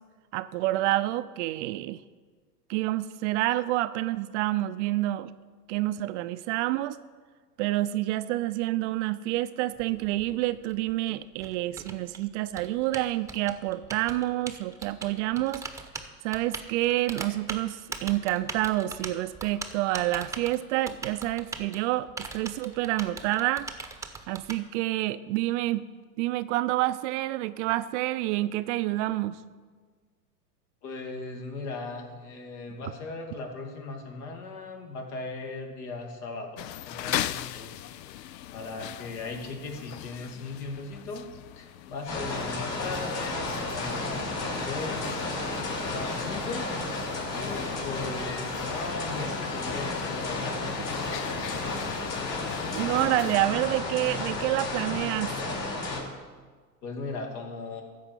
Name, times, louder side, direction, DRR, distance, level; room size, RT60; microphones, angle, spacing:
voice 1, 0.3-2.0 2.7-5.3 5.7-7.0 7.6-15.6 16.2-23.8 24.3-25.9 26.2-29.4 52.7-55.3, right 16 dB, 50° right, 13 dB, 0.5 m, -28 dB
Typing, 9.7-24.6, right 4 dB, 5° right, 0.9 m, -40 dB
voice 2, 30.8-37.9 38.5-41.3 41.6-45.5 45.8-46.7 47.3-50.9 56.8-57.8, left 3 dB, 60° left, 2 dB, 2.5 m, -38 dB
sound 1, 36.6-53.4, left 12 dB, 80° left, 0.6 m, -39 dB
sound 2, 42.1-56.0, left 2 dB, 40° left, 4.1 m, -32 dB
13.5 x 4.9 x 8.4 m, 1.5 s
hypercardioid pair, 100°, 49 cm